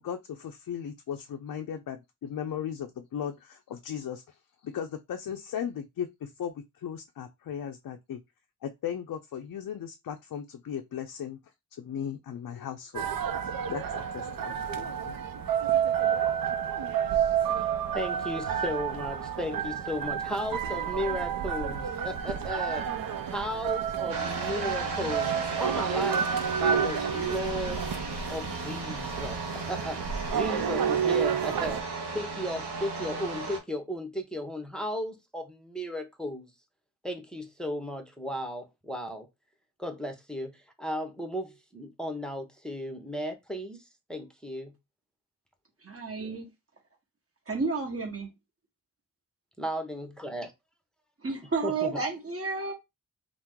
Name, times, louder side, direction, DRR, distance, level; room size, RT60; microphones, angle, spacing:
voice 1, 0.0-4.2 4.6-8.2 8.6-11.4 11.8-13.1 13.7-15.1 17.5-17.6, left 8 dB, 55° left, 0.4 m, -37 dB
sound 1, 12.9-31.8, right 8 dB, 60° right, 0.5 m, -30 dB
voice 2, 17.1-22.9 23.3-26.3 26.6-27.9 28.3-31.8 32.1-36.5 37.0-39.3 39.8-44.7 49.6-50.5 51.6-52.0, equal, ahead, 0.7 m, -35 dB
sound 2, 24.1-33.6, right 3 dB, 90° right, 0.8 m, -36 dB
voice 3, 45.8-46.5 47.5-48.3 51.2-52.7, right 4 dB, 35° right, 1.1 m, -31 dB
2.9 x 2.0 x 3.5 m
cardioid pair, 50°, 39 cm